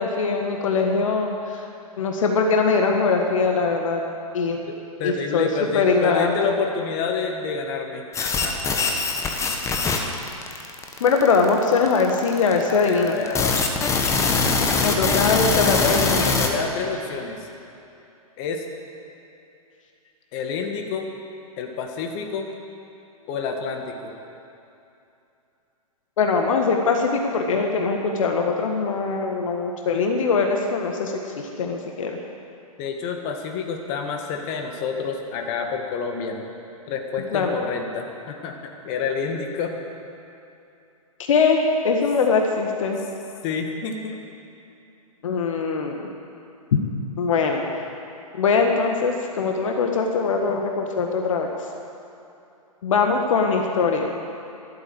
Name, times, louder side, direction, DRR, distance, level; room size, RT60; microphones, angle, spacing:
voice 1, 0.0-1.6 2.0-4.0 4.3-4.6 5.0-5.5 5.7-6.5 11.0-13.1 14.8-16.3 26.2-32.2 37.3-37.5 41.3-43.0 45.2-46.1 46.7-46.8 47.2-47.6 48.3-51.5 52.8-54.1, left 4 dB, 60° left, 2 dB, 1.6 m, -22 dB
voice 2, 4.7-8.9 12.7-13.6 16.4-17.4 18.4-18.6 20.3-21.1 21.6-22.5 23.3-24.1 32.8-36.4 36.9-39.8 43.4-44.2, left 5 dB, 35° left, 3 dB, 1.9 m, -29 dB
sound 1, 8.1-16.5, left 4 dB, 15° left, 1.4 m, -22 dB
14.5 x 12.0 x 7.9 m, 2.7 s
figure-of-eight pair, 115°, 19 cm